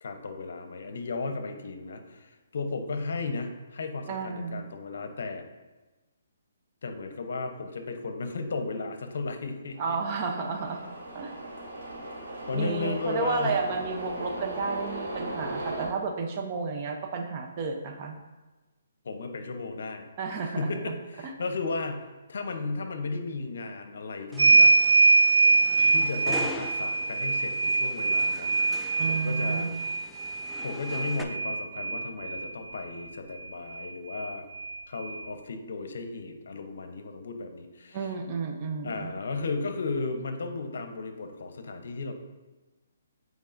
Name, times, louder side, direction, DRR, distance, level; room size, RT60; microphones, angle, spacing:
voice 1, 0.0-5.5 6.8-10.0 12.5-13.5 19.0-20.1 20.6-24.7 25.9-28.8 29.1-29.7 30.6-34.5 34.9-38.0 38.8-42.1, left 3 dB, 65° left, 7 dB, 0.7 m, -34 dB
voice 2, 4.1-4.6 9.8-10.8 11.1-11.3 12.5-18.2 20.2-20.9 21.2-21.3 29.0-29.7 37.9-39.1, right 4 dB, 30° right, 3 dB, 0.7 m, -32 dB
sound 1, 9.7-15.9, right 1 dB, 60° right, 1.9 m, -38 dB
sound 2, 24.3-31.2, left 1 dB, ahead, 0.3 m, -42 dB
sound 3, 24.4-32.5 33.8-33.9 34.2-35.2, right 3 dB, 85° right, 0.3 m, -24 dB
8.0 x 4.6 x 2.6 m, 1.2 s
hypercardioid pair, 160°, 0 cm